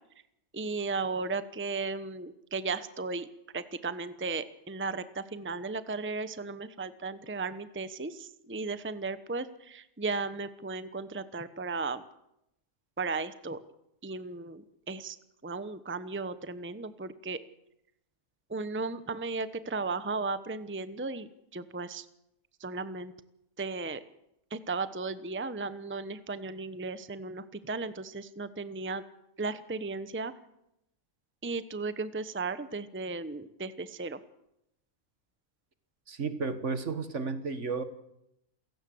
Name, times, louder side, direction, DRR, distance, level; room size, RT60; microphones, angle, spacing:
voice 1, 0.5-3.3 3.5-12.0 13.0-13.6 14.0-15.2 15.4-17.4 18.5-21.3 21.5-22.1 22.6-23.1 23.6-24.0 24.5-29.0 29.4-30.3 31.4-34.2, right 3 dB, 10° right, 13 dB, 0.9 m, -35 dB
voice 2, 36.1-37.8, right 4 dB, 55° right, 11 dB, 1.9 m, -33 dB
28.5 x 16.5 x 7.8 m, 0.84 s
omnidirectional pair, 1.5 m